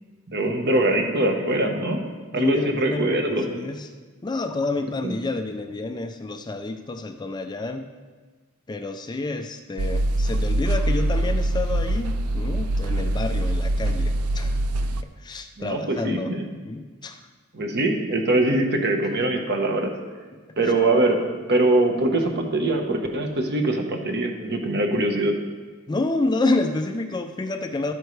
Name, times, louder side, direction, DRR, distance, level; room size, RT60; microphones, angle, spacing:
voice 1, 0.3-2.0 2.3-3.5 5.0-5.1 15.6-16.4 17.5-19.9 20.6-21.2 21.5-25.3, right 2 dB, 50° right, 3 dB, 1.1 m, -22 dB
voice 2, 2.3-3.9 4.2-7.9 8.7-14.6 15.2-16.3 16.6-17.2 20.6-20.7 25.9-27.9, left 2 dB, 20° left, 6 dB, 0.4 m, -28 dB
sound 1, 9.8-15.0, right 1 dB, 85° right, 0.5 m, -23 dB
12.0 x 9.0 x 3.3 m, 1.4 s
head